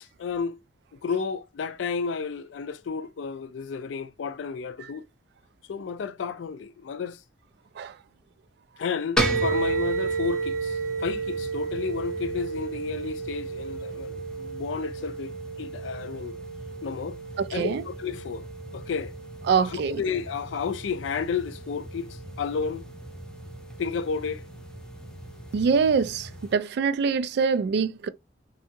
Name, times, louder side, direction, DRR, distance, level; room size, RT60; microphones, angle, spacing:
voice 1, 0.2-0.6 0.9-5.1 5.7-7.2 8.8-15.3 15.6-16.4 16.8-17.2 17.5-18.5 18.7-19.1 19.7-22.9 23.8-24.5, left 5 dB, 75° left, 0.4 m, -32 dB
sound 1, 9.2-26.5, right 3 dB, 5° left, 0.5 m, -33 dB
voice 2, 17.4-17.8 19.5-20.0 25.5-28.1, right 5 dB, 65° right, 0.3 m, -24 dB
2.7 x 2.4 x 2.5 m
head